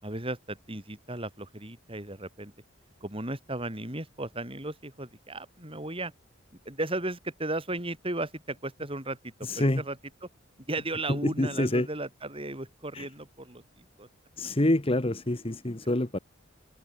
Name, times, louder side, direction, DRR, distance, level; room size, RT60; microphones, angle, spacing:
voice 1, 0.0-2.5 3.0-6.1 6.7-10.0 10.7-14.1, right 2 dB, 30° right, 7.3 m, -35 dB
voice 2, 9.5-9.8 11.1-11.9 12.9-13.1 14.4-16.2, left 1 dB, 30° left, 1.3 m, -26 dB
head